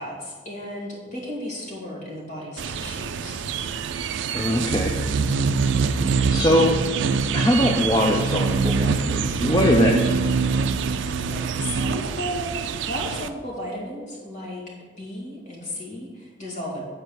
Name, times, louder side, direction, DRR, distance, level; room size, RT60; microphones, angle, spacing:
voice 1, 0.0-3.4 11.2-16.8, left 1 dB, 40° left, -4 dB, 2.1 m, -34 dB
sound 1, 2.6-13.3, right 5 dB, 60° right, 0.4 m, -24 dB
voice 2, 4.3-4.9 6.3-6.8 7.3-10.0, left 1 dB, 20° left, 1 dB, 0.5 m, -21 dB
8.3 x 4.4 x 6.3 m, 1.5 s
head